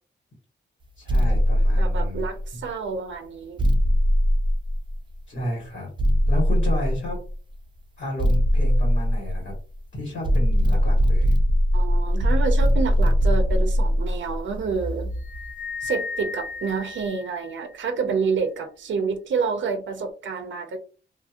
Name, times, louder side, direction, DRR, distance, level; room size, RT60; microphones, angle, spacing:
voice 1, 1.0-2.2 2.5-2.6 5.3-5.9 6.3-7.2 8.0-9.5 9.9-11.3, left 1 dB, 75° left, 1.4 m, -32 dB
sound 1, 1.1-2.6 3.6-5.2 6.0-7.3 8.2-9.8 10.2-15.5, equal, 25° right, 0.4 m, -21 dB
voice 2, 1.8-3.6 11.7-15.1 15.8-20.8, right 5 dB, 80° right, 0.5 m, -28 dB
sound 2, 15.2-17.9, left 4 dB, 40° left, 0.7 m, -35 dB
2.8 x 2.6 x 2.4 m
wide cardioid pair, 165°, 19 cm